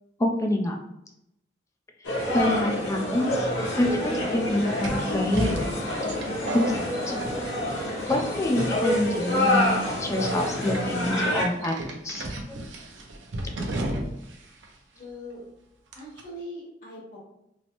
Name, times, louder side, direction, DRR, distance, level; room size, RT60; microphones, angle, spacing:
voice 1, 0.2-0.8 2.3-3.5 3.7-6.1 6.5-7.2 8.1-12.6 13.6-13.7, left 1 dB, 15° left, 1 dB, 0.4 m, -27 dB
sound 1, 2.0-11.4, left 1 dB, 90° left, 1.0 m, -27 dB
sound 2, 3.4-3.5 4.8-7.8 8.1-8.6 9.2-9.4 10.2-10.8 11.6-14.4 14.6-14.7 15.9-16.2, right 1 dB, 80° right, 0.5 m, -33 dB
voice 2, 14.9-15.4 15.9-17.2, left 1 dB, 50° left, -6 dB, 1.3 m, -41 dB
3.1 x 2.0 x 2.9 m, 0.83 s
head